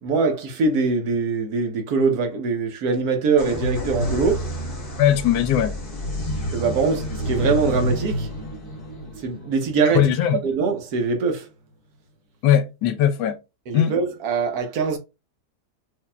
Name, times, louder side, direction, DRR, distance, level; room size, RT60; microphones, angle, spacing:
voice 1, 0.0-4.5 6.5-8.3 9.2-10.1 10.4-11.5 13.7-15.0, right 4 dB, 65° right, 1.2 m, -22 dB
sound 1, 3.4-10.9, equal, 25° left, 1.0 m, -29 dB
voice 2, 5.0-5.7 9.9-10.4 12.4-13.4 13.7-13.9, left 10 dB, 85° left, 1.2 m, -19 dB
4.8 x 2.8 x 2.2 m
omnidirectional pair, 1.8 m